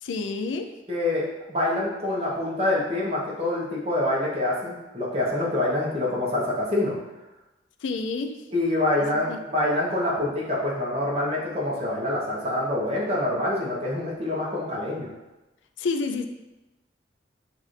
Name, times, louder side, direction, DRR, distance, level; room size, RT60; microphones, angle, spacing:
voice 1, 0.0-0.7 7.8-8.4 9.3-9.4 15.8-16.3, left 4 dB, 90° left, 6 dB, 0.4 m, -29 dB
voice 2, 0.9-6.9 8.5-15.1, left 1 dB, 35° right, -5 dB, 1.1 m, -26 dB
6.5 x 2.5 x 3.2 m, 1.0 s
head